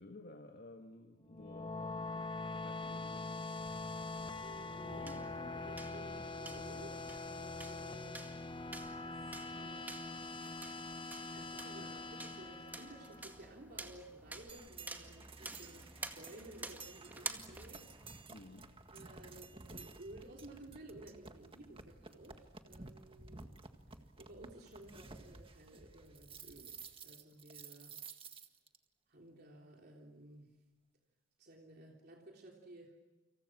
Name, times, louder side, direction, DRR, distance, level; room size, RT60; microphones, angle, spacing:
voice 1, 0.0-3.5 18.3-18.8, left 2 dB, 55° left, 1.8 m, -55 dB
sound 1, 1.2-13.6, left 3 dB, 25° left, 0.9 m, -44 dB
sound 2, 3.6-18.3, right 2 dB, 10° right, 2.0 m, -50 dB
voice 2, 4.4-7.0 7.3-8.3 9.0-10.4 10.9-15.9 16.1-18.0 18.9-23.5 24.2-28.0 29.1-30.6 31.4-33.0, right 1 dB, 55° right, 3.4 m, -55 dB
sound 3, 14.5-28.8, right 4 dB, 30° right, 1.8 m, -53 dB
30.0 x 27.0 x 6.2 m
head